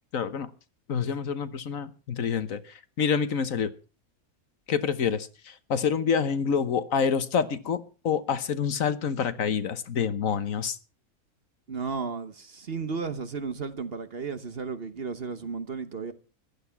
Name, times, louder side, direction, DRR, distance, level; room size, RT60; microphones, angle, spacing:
voice 1, 0.1-0.5 0.9-2.6 3.0-3.7 4.7-10.8, left 6 dB, 65° left, 1.4 m, -27 dB
voice 2, 11.7-16.1, right 5 dB, 45° right, 1.2 m, -34 dB
15.5 x 12.0 x 5.7 m
omnidirectional pair, 1.5 m